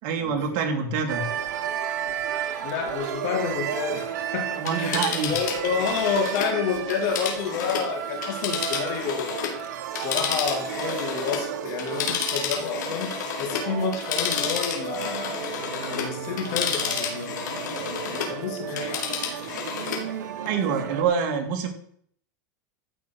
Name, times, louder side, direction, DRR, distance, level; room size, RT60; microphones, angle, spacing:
voice 1, 0.0-1.3 4.6-5.3 20.4-21.7, right 6 dB, 50° right, 4 dB, 2.7 m, -26 dB
sound 1, 1.1-21.0, right 9 dB, 80° right, 1.4 m, -33 dB
voice 2, 2.6-13.1 13.4-15.4 15.9-17.4 17.8-19.5, left 6 dB, 60° left, 2 dB, 4.1 m, -30 dB
Telephone, 4.5-9.6 9.9-18.4 18.7-20.1 20.5-20.6, left 7 dB, 85° left, 3.6 m, -31 dB
14.0 x 6.1 x 6.6 m, 0.64 s
supercardioid pair, 135°, 10 cm